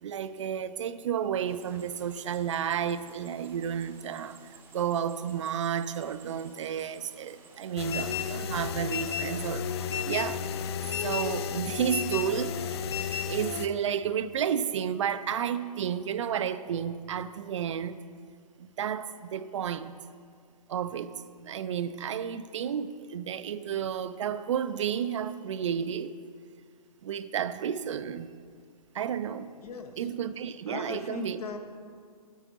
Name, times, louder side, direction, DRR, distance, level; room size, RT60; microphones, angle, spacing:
voice 1, 0.0-4.4 4.7-9.7 10.0-10.4 11.0-12.9 13.2-18.0 18.6-19.9 20.7-26.2 27.0-28.3 28.9-29.5 30.0-31.4, right 8 dB, 50° right, 0.4 m, -31 dB
sound 1, 1.5-10.3, right 4 dB, 10° right, 0.7 m, -55 dB
sound 2, 7.8-13.7, left 8 dB, 40° left, 0.4 m, -32 dB
voice 2, 29.6-30.1 30.7-31.6, left 6 dB, 70° left, 1.1 m, -39 dB
9.3 x 8.8 x 4.0 m
hypercardioid pair, 135°, 20 cm